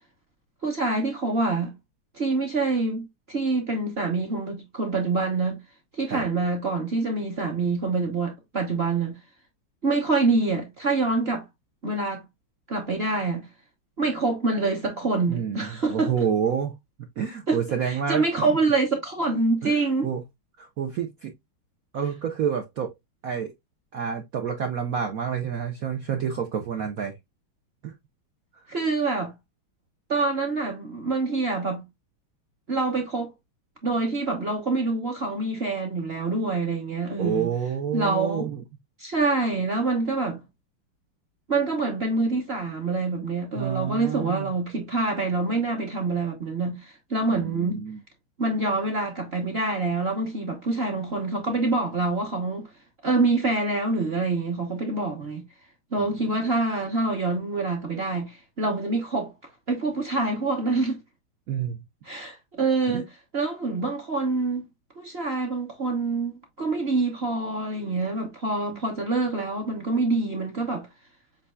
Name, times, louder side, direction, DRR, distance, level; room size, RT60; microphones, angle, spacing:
voice 1, 0.6-1.7 2.1-5.6 5.9-9.1 9.8-11.4 11.8-12.2 12.7-13.5 14.0-16.1 17.5-17.6 17.9-20.1 28.7-29.3 30.1-31.8 32.7-33.3 33.8-37.5 37.9-38.5 39.0-40.4 41.5-47.8 48.4-52.7 53.0-55.4 55.9-59.3 59.7-61.0 62.0-63.1 63.3-64.7 65.0-70.9, right 3 dB, 40° right, 0.9 m, -26 dB
voice 2, 15.3-16.7 17.2-18.5 19.6-20.2 20.6-21.3 21.9-22.9 23.2-23.5 23.9-27.1 27.8-27.9 28.6-28.7 37.2-38.6 43.5-44.5 47.3-48.0 56.0-56.2 61.5-61.8 62.9-63.0 68.7-68.8, right 8 dB, 75° right, 0.8 m, -29 dB
7.6 x 2.7 x 2.3 m
omnidirectional pair, 2.4 m